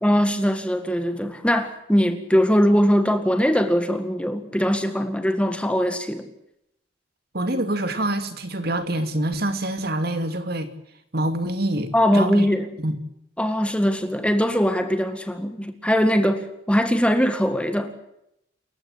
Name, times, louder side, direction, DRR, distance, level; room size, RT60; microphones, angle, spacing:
voice 1, 0.0-6.3 11.9-12.7 13.4-18.0, equal, 5° left, 1.9 m, -21 dB
voice 2, 7.3-10.7 11.1-12.5 12.8-13.0, right 1 dB, 50° right, 2.6 m, -26 dB
28.5 x 15.5 x 8.1 m
head